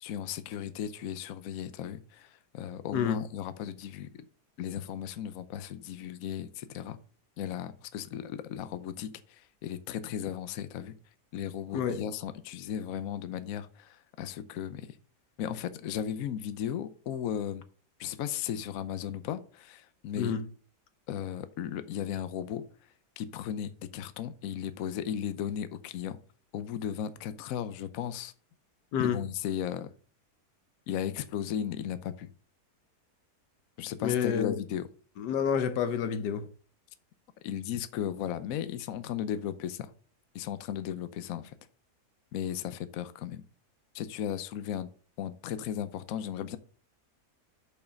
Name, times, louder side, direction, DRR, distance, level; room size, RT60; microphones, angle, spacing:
voice 1, 0.0-4.1 4.6-7.0 7.4-11.0 11.3-14.9 15.4-17.7 18.0-20.3 21.1-22.6 23.2-26.2 26.5-28.3 29.0-29.9 30.9-32.3 33.8-34.9 37.4-39.9 40.3-41.5 42.3-43.4 43.9-44.9 45.2-46.6, left 9 dB, 65° left, 1.0 m, -36 dB
voice 2, 2.9-3.2 11.7-12.0 20.2-20.5 28.9-29.2 34.0-34.6 35.2-36.5, left 7 dB, 90° left, 1.4 m, -29 dB
6.7 x 5.5 x 5.2 m
omnidirectional pair, 1.8 m